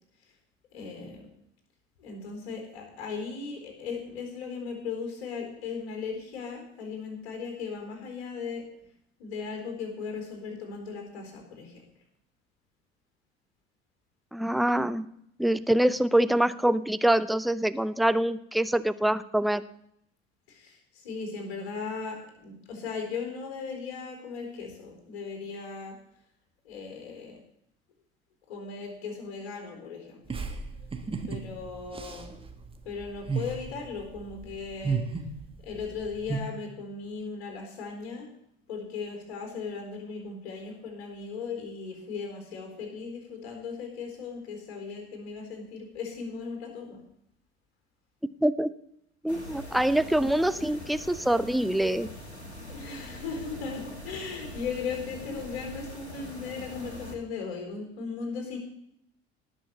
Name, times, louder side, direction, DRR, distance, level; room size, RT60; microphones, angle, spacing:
voice 1, 0.7-1.3 2.0-8.6 9.2-11.8 20.5-26.0 26.6-27.4 28.5-30.2 31.3-32.3 32.8-35.0 35.6-38.3 38.7-47.0 52.6-58.6, left 5 dB, 65° left, 3 dB, 4.2 m, -37 dB
voice 2, 14.3-15.0 15.4-19.6 48.4-48.7 49.2-52.1, right 1 dB, ahead, 15 dB, 0.4 m, -25 dB
sound 1, 30.3-36.4, right 5 dB, 15° right, 1.6 m, -34 dB
sound 2, 49.3-57.2, left 1 dB, 85° left, 1.8 m, -43 dB
18.5 x 6.3 x 6.9 m, 0.74 s
figure-of-eight pair, 60°, 32 cm